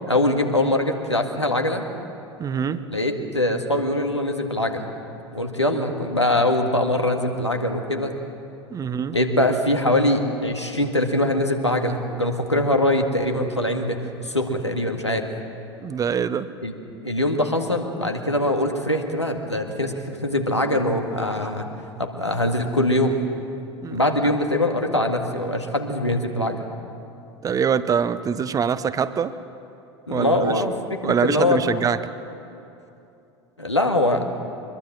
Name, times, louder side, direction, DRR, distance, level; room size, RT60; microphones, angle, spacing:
voice 1, 0.1-1.9 2.9-4.9 5.3-8.2 9.1-14.0 14.2-15.3 16.6-16.7 17.0-21.7 22.0-23.2 23.9-26.7 30.1-31.8 33.6-34.3, left 1 dB, 90° left, 3 dB, 2.0 m, -22 dB
voice 2, 2.4-2.8 8.7-9.2 15.8-16.5 23.8-24.0 27.4-29.3 30.1-30.5 31.0-32.0, right 7 dB, 25° right, 14 dB, 0.9 m, -24 dB
24.0 x 21.5 x 7.5 m, 2.7 s
figure-of-eight pair, 75°, 14 cm